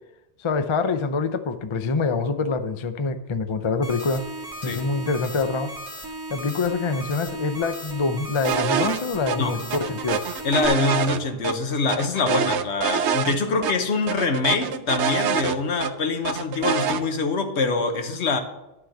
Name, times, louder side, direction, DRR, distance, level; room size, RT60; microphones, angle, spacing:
voice 1, 0.4-4.3 4.6-5.7 6.3-10.3, left 4 dB, 40° left, 0.4 m, -25 dB
sound 1, 3.8-10.7, right 1 dB, 20° right, 1.5 m, -36 dB
sound 2, 8.4-9.0 9.3-9.4 9.7-11.5 11.9-13.4 13.6-13.7 14.1-15.9 16.2-17.0, right 7 dB, 80° right, 0.9 m, -25 dB
voice 2, 10.4-18.4, left 4 dB, 75° left, 1.3 m, -24 dB
11.5 x 3.9 x 7.7 m
omnidirectional pair, 1.2 m